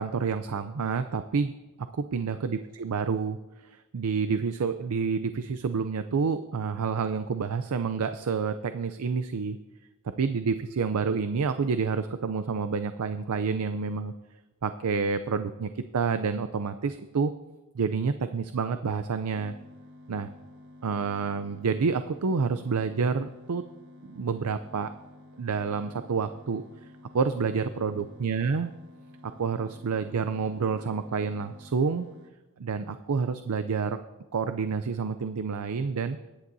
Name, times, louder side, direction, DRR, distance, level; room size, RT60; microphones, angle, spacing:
voice 1, 0.0-1.5 1.8-9.6 10.2-14.1 14.6-17.3 17.7-19.6 20.1-20.3 20.8-23.6 24.0-24.9 25.4-26.6 27.1-28.7 29.4-32.1 32.6-34.0 34.3-36.2, right 5 dB, 90° right, 10 dB, 0.5 m, -28 dB
sound 1, 19.4-32.3, left 1 dB, 60° right, 1.3 m, -51 dB
22.0 x 10.0 x 2.7 m, 1.1 s
head